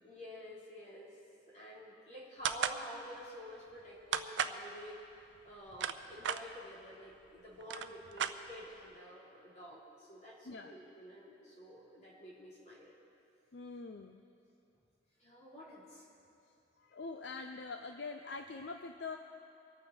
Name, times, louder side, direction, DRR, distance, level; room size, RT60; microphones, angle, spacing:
voice 1, 0.0-1.1 1.5-5.0 5.4-12.9 15.2-16.1, equal, 40° left, -7 dB, 3.9 m, -50 dB
sound 1, 2.4-2.8 4.1-4.6 5.5-6.4 7.2-7.3 7.6-8.8, right 7 dB, 90° right, 0.6 m, -35 dB
voice 2, 13.5-14.2 16.8-19.2, left 4 dB, 65° left, 6 dB, 0.6 m, -44 dB
25.0 x 9.0 x 4.4 m, 2.7 s
head